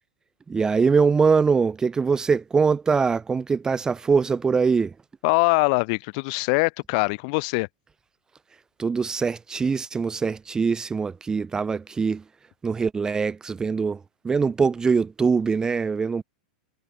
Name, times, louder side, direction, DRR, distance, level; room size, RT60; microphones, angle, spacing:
voice 1, 0.5-4.9 8.8-12.2 12.6-16.2, right 5 dB, 15° right, 0.9 m, -23 dB
voice 2, 5.2-7.7, left 33 dB, 55° left, 3.2 m, -22 dB
hypercardioid pair, 120°, 5 cm